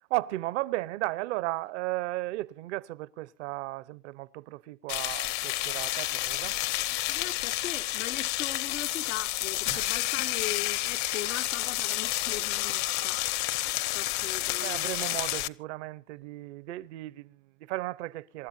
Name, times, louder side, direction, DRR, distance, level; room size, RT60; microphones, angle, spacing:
voice 1, 0.1-6.6 9.7-9.9 14.6-18.5, right 18 dB, 65° right, 0.9 m, -35 dB
sound 1, 4.9-15.5, left 16 dB, 50° left, 0.8 m, -30 dB
voice 2, 6.9-13.7 13.9-15.1, left 12 dB, 85° left, 0.9 m, -40 dB
27.5 x 13.0 x 2.7 m
hypercardioid pair, 95°, 38 cm